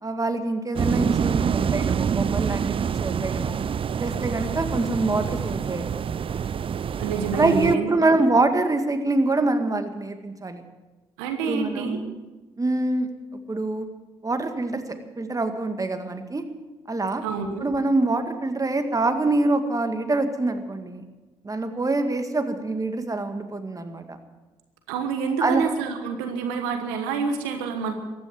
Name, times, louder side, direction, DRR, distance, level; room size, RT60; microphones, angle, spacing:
voice 1, 0.0-3.6 4.0-6.1 7.3-10.6 11.4-12.2 12.6-13.1 13.5-13.9 14.2-14.8 15.2-16.4 16.9-17.2 17.6-21.0 21.4-24.2 25.4-25.6, right 2 dB, 25° right, 7 dB, 2.0 m, -25 dB
sound 1, 0.7-7.7, right 7 dB, 45° right, 0.5 m, -26 dB
voice 2, 7.0-7.9 11.2-12.0 17.2-17.7 24.9-27.9, right 5 dB, 85° right, 6 dB, 1.3 m, -27 dB
15.0 x 10.0 x 9.4 m, 1.2 s
hypercardioid pair, 45°, 13 cm